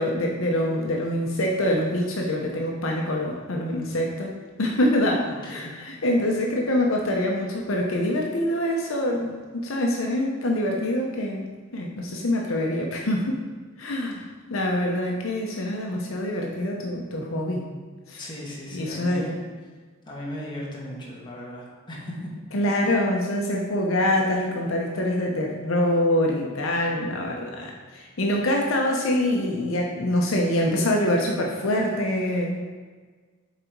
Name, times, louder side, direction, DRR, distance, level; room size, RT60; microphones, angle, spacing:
voice 1, 0.0-11.5 11.7-13.5 13.8-14.2 14.5-17.7 18.1-18.2 18.7-19.3 22.5-32.7, left 1 dB, 70° left, 0 dB, 0.8 m, -25 dB
voice 2, 5.2-5.7 18.2-19.4 20.1-22.1, equal, 20° left, -5 dB, 1.5 m, -37 dB
7.4 x 4.0 x 4.6 m, 1.5 s
head